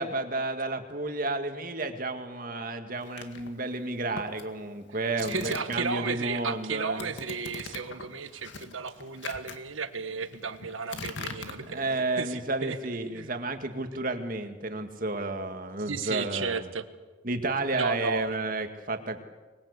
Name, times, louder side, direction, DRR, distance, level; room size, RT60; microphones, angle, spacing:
voice 1, 0.0-7.1 11.7-16.7 17.2-19.2, right 2 dB, 45° right, 6 dB, 2.1 m, -31 dB
sound 1, 3.0-6.2 6.4-12.2, left 3 dB, 65° left, 2.1 m, -43 dB
voice 2, 5.2-12.8 13.1-13.3 15.9-16.9 17.7-18.3, right 5 dB, 85° right, 9 dB, 1.6 m, -34 dB
25.5 x 21.5 x 8.3 m, 1.3 s
head